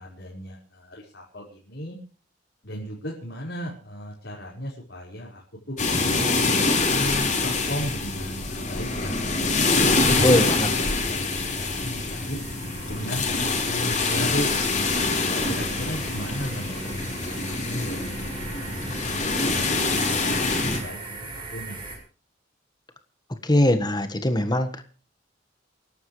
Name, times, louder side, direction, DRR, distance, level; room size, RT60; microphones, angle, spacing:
voice 1, 0.0-2.0 2.6-5.4 5.7-6.2 6.9-12.4 12.9-14.5 14.7-15.0 15.5-16.9 17.2-18.0 18.5-21.8, equal, 70° left, -5 dB, 5.2 m, -36 dB
sound 1, 5.8-20.8, left 3 dB, 45° left, 4.9 m, -25 dB
sound 2, 8.7-22.0, right 2 dB, 30° right, 6.2 m, -40 dB
voice 2, 10.2-10.7 23.4-24.7, left 1 dB, 25° left, 8 dB, 1.6 m, -21 dB
28.5 x 11.5 x 3.3 m, 0.37 s
head